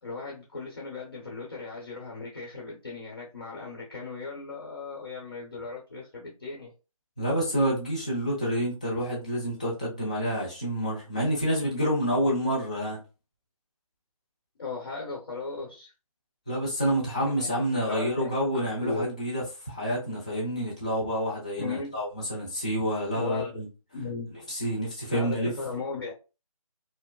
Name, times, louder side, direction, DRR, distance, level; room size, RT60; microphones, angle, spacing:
voice 1, 0.0-6.7 14.6-15.9 17.4-19.1 21.6-22.0 23.1-23.6 23.9-24.5 25.1-26.1, left 4 dB, 40° left, 1.0 m, -37 dB
voice 2, 7.2-13.0 16.5-23.7 24.5-25.5, equal, 15° left, 0.5 m, -28 dB
4.6 x 2.0 x 2.3 m
figure-of-eight pair, 170°, 18 cm